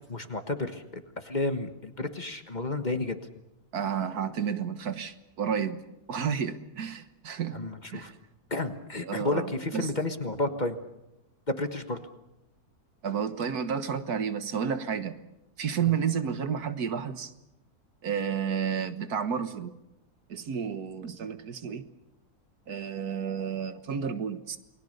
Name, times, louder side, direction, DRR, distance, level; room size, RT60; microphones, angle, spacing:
voice 1, 0.1-3.2 7.5-8.1 8.5-10.7 11.5-12.0 15.8-15.9, left 2 dB, 30° left, 1.5 m, -31 dB
voice 2, 3.7-7.6 7.9-8.2 9.0-9.9 13.0-15.2 15.6-17.3 18.0-19.7 20.3-21.8 22.7-24.6, right 7 dB, 75° right, 1.8 m, -31 dB
29.0 x 20.5 x 6.7 m
omnidirectional pair, 1.6 m